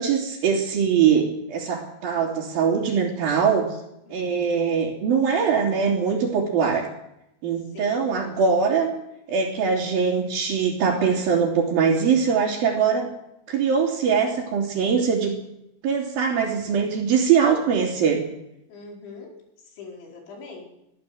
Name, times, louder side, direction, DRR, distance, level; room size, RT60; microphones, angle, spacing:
voice 1, 0.0-3.7 4.1-6.9 7.4-8.9 9.3-13.1 13.5-15.3 15.8-18.2, right 6 dB, 55° right, -6 dB, 4.5 m, -22 dB
voice 2, 4.1-4.6 7.6-8.2 18.7-20.6, left 4 dB, 80° left, 0 dB, 6.9 m, -43 dB
24.0 x 14.0 x 7.9 m, 0.85 s
omnidirectional pair, 5.2 m